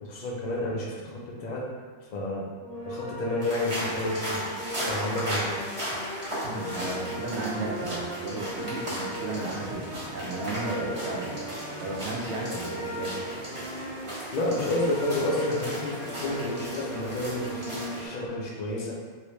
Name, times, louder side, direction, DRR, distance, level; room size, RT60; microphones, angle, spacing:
voice 1, 0.0-1.7 2.1-2.5 2.8-4.4 4.7-5.6 14.3-18.9, left 1 dB, 50° left, -3 dB, 0.5 m, -30 dB
sound 1, 2.6-18.3, equal, 80° left, 1.2 m, -38 dB
sound 2, 3.4-18.1, equal, 25° right, 1.0 m, -36 dB
voice 2, 6.4-13.2, right 2 dB, 70° right, -2 dB, 0.9 m, -34 dB
3.2 x 2.7 x 3.1 m, 1.5 s
omnidirectional pair, 1.3 m